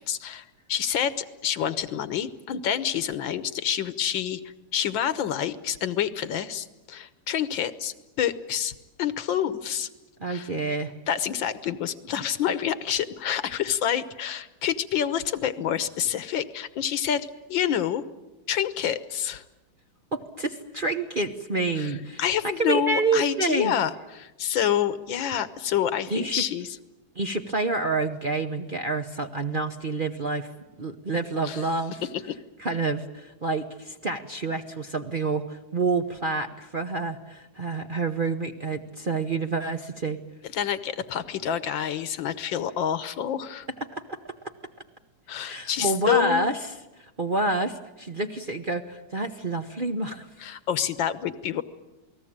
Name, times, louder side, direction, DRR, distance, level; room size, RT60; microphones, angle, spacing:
voice 1, 0.0-9.9 10.3-10.5 11.1-18.0 18.5-19.4 21.8-21.9 22.2-26.8 31.4-31.6 32.1-32.4 40.5-43.7 45.3-46.5 50.4-51.6, left 9 dB, 80° left, 14 dB, 1.8 m, -28 dB
voice 2, 10.2-10.9 20.1-23.7 26.1-26.4 27.2-30.5 30.8-32.0 32.6-40.2 43.9-44.2 45.4-46.6 47.0-50.5, right 3 dB, 40° right, 6 dB, 0.8 m, -28 dB
28.5 x 19.0 x 8.8 m, 1.0 s
omnidirectional pair, 2.1 m